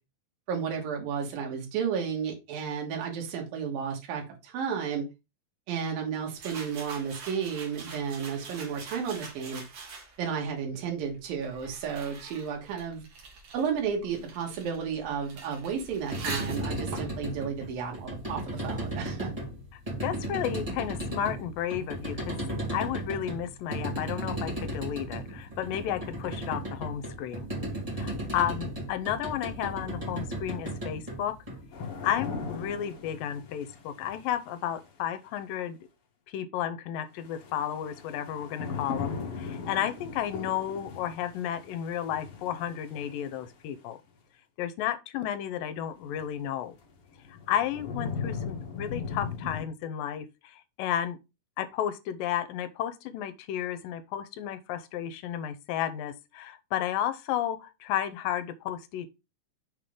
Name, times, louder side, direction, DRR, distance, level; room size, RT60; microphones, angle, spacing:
voice 1, 0.5-5.0 5.7-9.6 10.2-13.0 13.5-19.3, right 7 dB, 75° right, 3.2 m, -32 dB
sound 1, 6.3-10.4 11.1-18.5, right 4 dB, 50° right, 2.4 m, -44 dB
sound 2, 15.9-32.1, right 1 dB, 35° right, 0.5 m, -35 dB
voice 2, 20.0-22.4 22.7-27.5 28.0-31.4 32.0-35.8 36.3-44.0 44.6-46.8 47.5-51.2 51.6-59.1, left 10 dB, 80° left, 2.3 m, -32 dB
sound 3, 31.7-34.8 37.2-43.5 46.1-46.2 46.8-49.6, left 5 dB, 55° left, 1.6 m, -38 dB
6.4 x 3.7 x 5.0 m
omnidirectional pair, 4.1 m